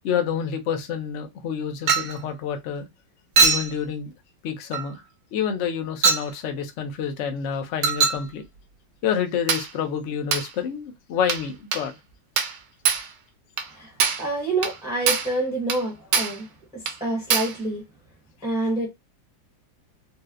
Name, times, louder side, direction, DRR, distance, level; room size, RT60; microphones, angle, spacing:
voice 1, 0.0-2.9 3.4-4.1 4.4-5.0 5.3-8.4 9.0-11.9, left 7 dB, 65° left, 0.7 m, -28 dB
Chink clink, 1.9-2.2 3.4-3.7 4.7-4.9 6.0-6.3 7.8-8.2 9.5-9.7 10.3-10.5 11.3-11.5 11.7-11.9 12.4-12.6 12.8-13.1 13.6-13.7 14.0-14.3 14.6-14.8 15.1-15.3 15.7-15.8 16.1-16.4 16.9-17.0 17.3-17.6, right 5 dB, 75° right, 1.3 m, -22 dB
voice 2, 13.7-16.5 16.7-17.8 18.4-18.9, right 2 dB, 5° right, 0.7 m, -27 dB
4.1 x 2.1 x 2.4 m
omnidirectional pair, 2.0 m